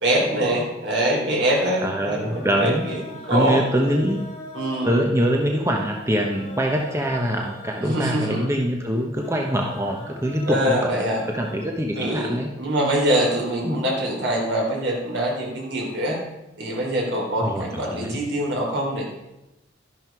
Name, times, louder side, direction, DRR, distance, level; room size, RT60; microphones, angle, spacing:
voice 1, 0.0-3.0 3.3-3.6 4.5-4.9 7.8-8.4 10.5-11.2 12.0-16.2 16.6-19.0, right 1 dB, 65° right, -1 dB, 4.0 m, -24 dB
sound 1, 1.5-11.7, left 1 dB, 30° left, 4.8 m, -42 dB
voice 2, 1.8-2.8 3.3-4.2 4.8-12.5 13.6-13.8 17.4-18.2, equal, 15° right, 1 dB, 1.0 m, -24 dB
12.5 x 10.5 x 4.8 m, 0.97 s
head